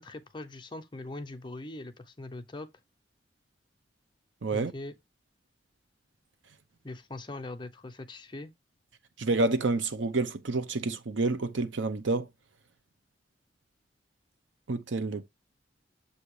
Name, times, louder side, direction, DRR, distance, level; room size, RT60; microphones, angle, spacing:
voice 1, 0.0-2.7 4.5-4.9 6.8-8.5, left 2 dB, 25° left, 0.7 m, -41 dB
voice 2, 4.4-4.7 9.2-12.3 14.7-15.3, right 3 dB, 85° right, 0.8 m, -28 dB
7.3 x 2.8 x 4.8 m
head